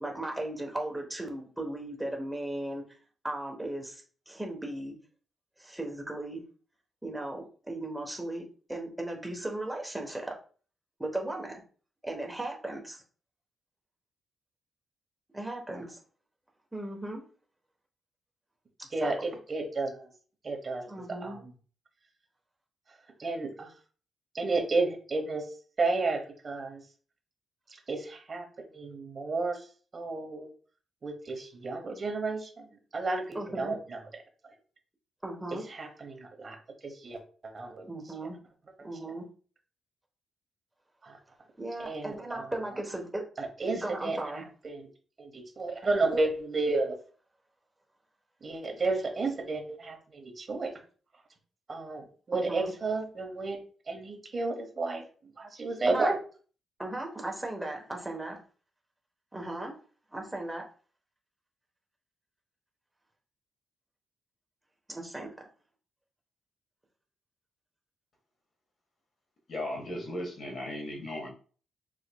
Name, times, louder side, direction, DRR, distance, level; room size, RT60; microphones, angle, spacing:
voice 1, 0.0-2.8 3.2-4.9 5.6-6.4 7.0-8.4 8.7-10.3 11.0-11.6 12.0-13.0 15.3-16.0 16.7-17.2 19.0-19.1 20.9-21.4 33.3-33.7 35.2-35.6 37.9-38.4 38.8-39.2 41.6-43.2 43.8-44.4 52.3-52.7 55.9-56.1 56.8-58.4 59.3-59.7 60.1-60.6 64.9-65.3, right 1 dB, 5° right, 1 dB, 1.0 m, -36 dB
voice 2, 18.9-20.1 20.4-20.8 21.2-21.5 23.2-23.7 24.3-25.5 25.8-26.8 27.7-29.7 29.9-30.5 31.0-34.0 34.4-34.5 35.5-36.6 36.8-38.1 41.0-41.2 41.8-42.7 43.4-44.9 45.2-47.0 48.4-50.7 51.7-53.6 53.9-55.0 55.4-56.2, right 3 dB, 35° right, 3 dB, 1.0 m, -32 dB
voice 3, 69.5-71.3, left 1 dB, 40° left, 2 dB, 1.3 m, -36 dB
4.9 x 4.1 x 2.2 m, 0.40 s
wide cardioid pair, 155°, 0 cm